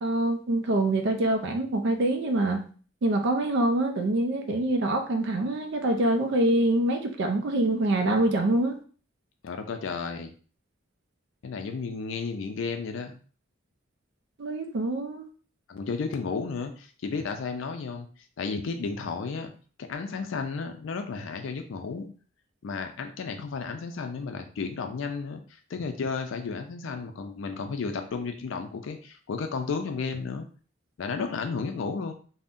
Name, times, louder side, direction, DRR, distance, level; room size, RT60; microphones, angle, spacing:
voice 1, 0.0-2.6 3.0-8.8 14.4-15.3, right 1 dB, 60° right, 4 dB, 0.4 m, -25 dB
voice 2, 9.4-10.3 11.4-13.2 15.7-18.1 18.4-19.5 19.8-22.1 22.6-30.5 31.0-32.1, left 4 dB, 65° left, 6 dB, 0.4 m, -33 dB
2.5 x 2.1 x 3.5 m, 0.41 s
head